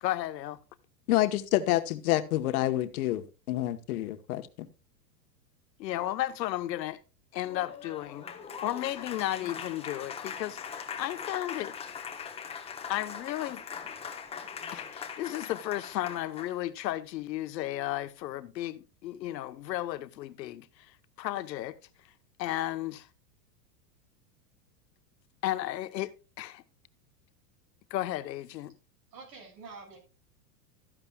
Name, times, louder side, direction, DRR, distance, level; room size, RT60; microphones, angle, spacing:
voice 1, 0.0-0.6 5.8-7.0 7.3-8.3 8.6-11.7 12.9-13.6 14.7-20.7 21.2-21.8 22.4-23.1 25.4-26.6 27.9-28.7, left 14 dB, 80° left, 1.1 m, -34 dB
voice 2, 1.1-4.7, left 15 dB, 60° left, 1.2 m, -28 dB
Applause, 7.4-16.6, left 6 dB, 10° left, 1.1 m, -41 dB
voice 3, 29.1-30.0, right 4 dB, 75° right, 6.0 m, -47 dB
13.5 x 11.0 x 2.3 m
supercardioid pair, 150°, 49 cm